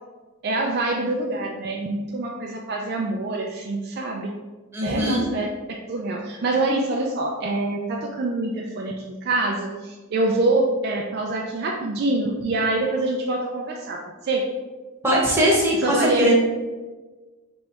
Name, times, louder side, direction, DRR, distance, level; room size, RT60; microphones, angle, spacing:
voice 1, 0.4-4.4 4.8-5.5 5.9-14.5 15.8-16.3, right 2 dB, 45° right, 0 dB, 0.3 m, -25 dB
voice 2, 4.7-5.2 15.0-16.3, equal, 10° right, -4 dB, 0.9 m, -20 dB
3.1 x 3.0 x 4.6 m, 1.3 s
head